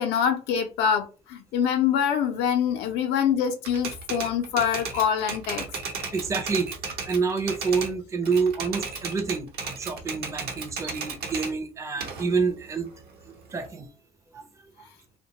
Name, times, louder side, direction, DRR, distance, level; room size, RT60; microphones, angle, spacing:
voice 1, 0.0-5.7, left 8 dB, 90° left, 0.4 m, -25 dB
Typewriter, 3.6-7.9 8.3-11.5 12.0-13.7, right 5 dB, 70° right, 0.8 m, -34 dB
voice 2, 6.1-6.7 7.1-12.9 13.5-13.9, right 5 dB, 15° right, 0.4 m, -27 dB
2.7 x 2.1 x 2.8 m
cardioid pair, 110°, 17 cm